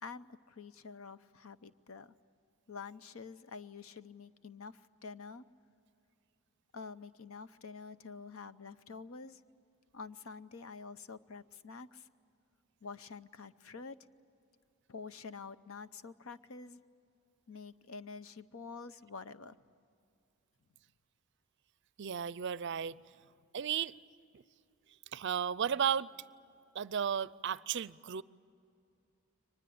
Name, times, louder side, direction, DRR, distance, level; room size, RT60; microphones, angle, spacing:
voice 1, 0.0-2.1 2.7-5.4 6.7-9.4 9.9-12.1 12.8-14.1 14.9-16.8 17.5-19.6, left 4 dB, 75° left, 0.8 m, -48 dB
voice 2, 22.0-23.0 23.5-23.9 25.1-26.1 26.7-28.2, right 8 dB, 55° right, 0.5 m, -34 dB
24.0 x 20.5 x 8.6 m
head